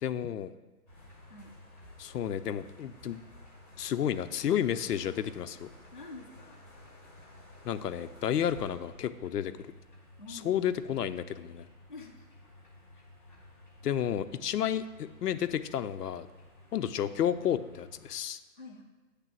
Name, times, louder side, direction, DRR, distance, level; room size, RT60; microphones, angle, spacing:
voice 1, 0.0-0.5 2.0-3.2 3.8-5.7 7.6-9.5 10.3-11.7 13.8-16.3 16.7-18.4, left 9 dB, 80° left, 11 dB, 0.6 m, -31 dB
sound 1, 0.9-18.1, left 1 dB, 10° left, 0.8 m, -54 dB
voice 2, 1.3-1.7 5.9-6.6 10.2-10.6 11.9-12.3 12.9-13.0 18.6-18.8, left 2 dB, 35° left, 0 dB, 0.4 m, -47 dB
8.2 x 3.3 x 6.1 m, 1.2 s
hypercardioid pair, 165°, 47 cm